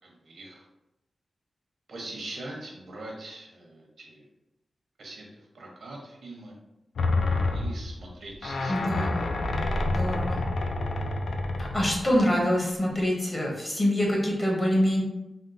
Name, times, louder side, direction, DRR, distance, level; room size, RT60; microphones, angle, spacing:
voice 1, 0.0-0.7 1.9-4.2 5.0-5.2 5.5-6.5 7.5-9.0, right 2 dB, 80° right, -1 dB, 0.8 m, -42 dB
sound 1, 7.0-12.2 12.9-13.0, left 2 dB, 80° left, 0.3 m, -28 dB
voice 2, 8.7-9.3 9.9-10.4 11.6-15.0, equal, 25° left, -2 dB, 0.8 m, -25 dB
3.6 x 2.3 x 2.6 m, 0.93 s
wide cardioid pair, 125°, 0 cm